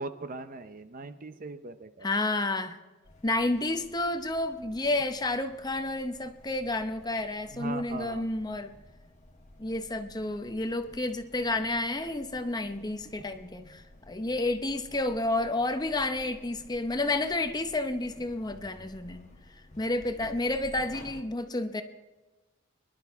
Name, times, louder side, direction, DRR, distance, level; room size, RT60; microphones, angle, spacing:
voice 1, 0.0-2.2 7.5-8.2, right 3 dB, 40° right, 11 dB, 0.7 m, -39 dB
voice 2, 2.0-2.8 3.2-8.7 9.6-19.3 19.6-21.8, left 2 dB, 20° left, 8 dB, 0.8 m, -30 dB
sound 1, 3.0-21.2, left 1 dB, 35° left, 1.5 m, -53 dB
23.5 x 11.5 x 3.6 m, 1.2 s
head